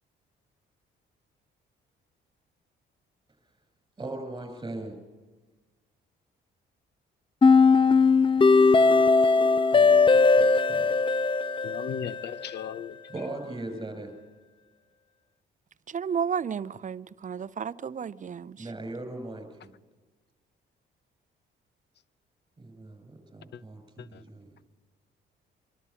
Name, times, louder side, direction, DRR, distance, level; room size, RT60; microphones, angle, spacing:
voice 1, 4.0-5.0 9.7-10.1 10.4-10.9 13.1-14.1 18.6-19.7 22.6-24.5, right 2 dB, 20° right, 6.8 m, -39 dB
sound 1, 7.4-12.4, left 4 dB, 25° left, 0.6 m, -19 dB
voice 2, 11.6-13.0, left 9 dB, 60° left, 0.8 m, -36 dB
voice 3, 15.9-18.7, right 7 dB, 40° right, 0.7 m, -32 dB
24.5 x 13.0 x 9.7 m
cardioid pair, 90°, 20 cm